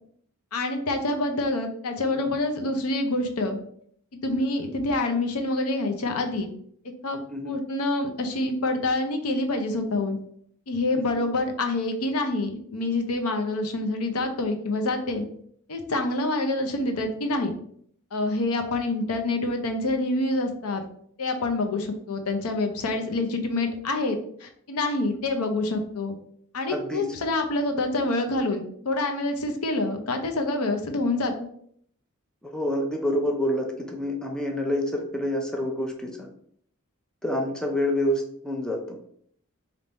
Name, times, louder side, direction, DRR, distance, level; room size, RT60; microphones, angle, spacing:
voice 1, 0.5-3.6 4.2-6.5 7.0-10.2 10.7-15.3 15.7-17.5 18.1-20.8 21.2-26.1 26.5-31.3, left 2 dB, 85° left, 5 dB, 0.7 m, -27 dB
voice 2, 26.7-27.1 32.4-36.3 37.2-39.0, left 1 dB, 5° left, 2 dB, 0.5 m, -28 dB
3.4 x 2.8 x 4.0 m, 0.64 s
head